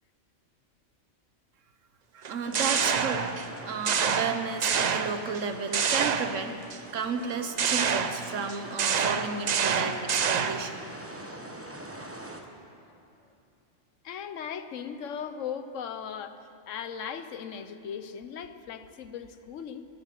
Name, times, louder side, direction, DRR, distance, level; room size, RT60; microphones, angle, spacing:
voice 1, 2.1-3.3 3.7-6.5 6.9-10.9, right 5 dB, 85° right, 8 dB, 1.4 m, -32 dB
sound 1, 2.2-3.5 3.9-5.4 5.7-6.8 7.6-10.8, right 6 dB, 45° right, 0.6 m, -27 dB
sound 2, 2.4-12.4, right 1 dB, 10° right, 1.0 m, -44 dB
voice 2, 14.0-19.9, left 7 dB, 85° left, 10 dB, 1.2 m, -38 dB
16.0 x 10.5 x 7.6 m, 2.6 s
omnidirectional pair, 1.3 m